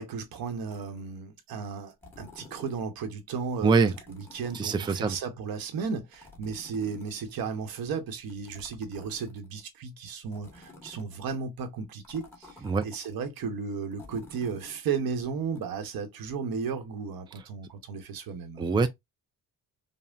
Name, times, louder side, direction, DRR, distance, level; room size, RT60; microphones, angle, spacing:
voice 1, 0.0-3.7 4.1-18.9, right 5 dB, 85° right, 1.1 m, -34 dB
sound 1, 0.7-1.1 1.9-2.9 3.8-5.2 6.1-7.6 8.3-9.6 10.3-11.3 12.0-13.1 13.9-14.8 15.6-15.7, left 2 dB, 5° left, 1.4 m, -51 dB
voice 2, 3.6-3.9 4.5-5.2 12.6-12.9 18.6-18.9, right 4 dB, 15° right, 0.4 m, -23 dB
5.4 x 2.1 x 2.5 m
cardioid pair, 135°, 35 cm